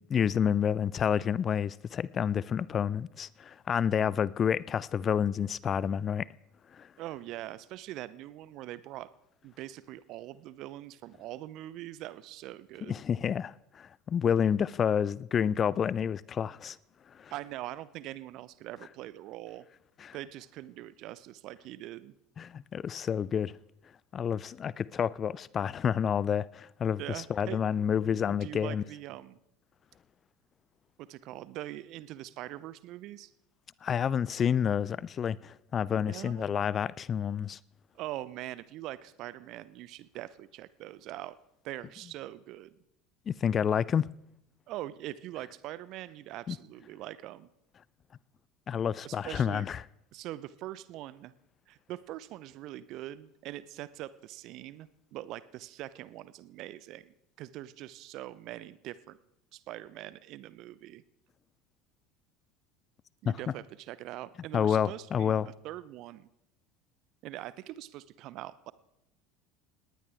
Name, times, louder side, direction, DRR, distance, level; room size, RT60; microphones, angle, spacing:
voice 1, 0.1-6.3 6.7-6.9 12.8-16.8 17.1-17.3 20.0-20.1 22.4-23.5 24.1-28.8 33.8-37.6 43.3-44.1 46.5-46.6 48.7-49.8 63.3-63.4 64.5-65.5, left 8 dB, 35° left, 0.5 m, -29 dB
voice 2, 7.0-9.1 9.4-13.0 17.3-19.6 20.1-22.1 27.0-27.6 28.0-29.4 31.0-33.3 35.9-36.5 37.9-41.3 41.6-42.8 44.7-47.5 49.0-49.6 50.1-51.3 51.7-59.2 59.5-61.0 63.2-66.3 67.2-68.7, right 14 dB, 50° right, 0.8 m, -43 dB
19.5 x 19.0 x 3.6 m
figure-of-eight pair, 70°, 0 cm